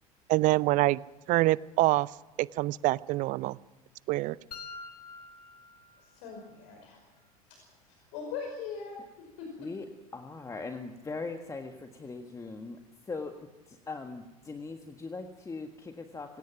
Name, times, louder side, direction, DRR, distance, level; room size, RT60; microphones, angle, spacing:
voice 1, 0.3-1.0 1.3-2.1 2.4-3.6 4.1-4.4, right 18 dB, 40° right, 22 dB, 0.6 m, -25 dB
sound 1, 4.5-6.5, left 4 dB, 80° left, 1.3 m, -46 dB
voice 2, 6.0-7.0 7.9-9.0 9.4-9.7, left 5 dB, 55° left, 2 dB, 5.4 m, -40 dB
voice 3, 10.1-16.4, left 3 dB, 15° left, 6 dB, 1.7 m, -40 dB
26.5 x 18.0 x 6.0 m, 1.2 s
figure-of-eight pair, 80°, 19 cm